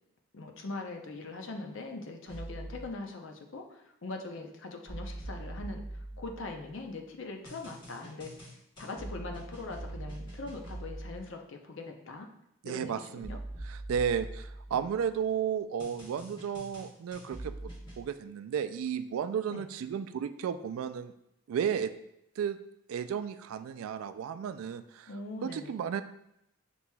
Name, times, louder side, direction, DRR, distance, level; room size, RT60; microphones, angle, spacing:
voice 1, 0.3-12.3 12.6-13.4 14.7-14.9 19.5-19.6 25.1-25.8, left 3 dB, 65° left, 3 dB, 0.6 m, -42 dB
sound 1, 2.3-2.8 4.9-6.7 7.5-11.2 13.2-15.1 15.8-18.0, right 1 dB, 20° left, 1.0 m, -43 dB
voice 2, 12.6-13.4 13.6-17.7 18.0-21.1 21.5-21.9 22.4-22.6 22.9-25.1 25.4-26.0, right 7 dB, 85° right, 12 dB, 0.3 m, -33 dB
7.1 x 2.9 x 2.2 m, 0.79 s
head